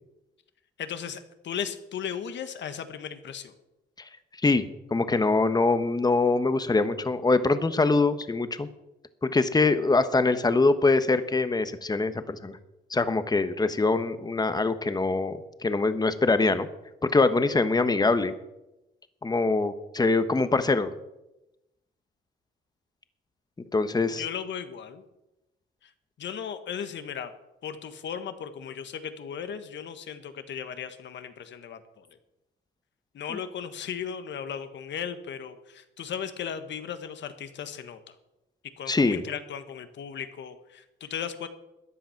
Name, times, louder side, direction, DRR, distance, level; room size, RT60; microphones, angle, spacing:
voice 1, 0.8-3.5 24.2-25.0 25.8-25.9 26.2-27.3 27.6-32.1 33.1-38.1 38.8-41.5, left 8 dB, 65° left, 10 dB, 1.5 m, -36 dB
voice 2, 4.4-8.7 9.3-12.6 12.9-16.7 17.0-18.3 19.2-20.9 23.7-24.2 38.9-39.2, left 3 dB, 20° left, 11 dB, 1.1 m, -23 dB
14.0 x 10.0 x 5.9 m, 0.94 s
cardioid pair, 90°, 20 cm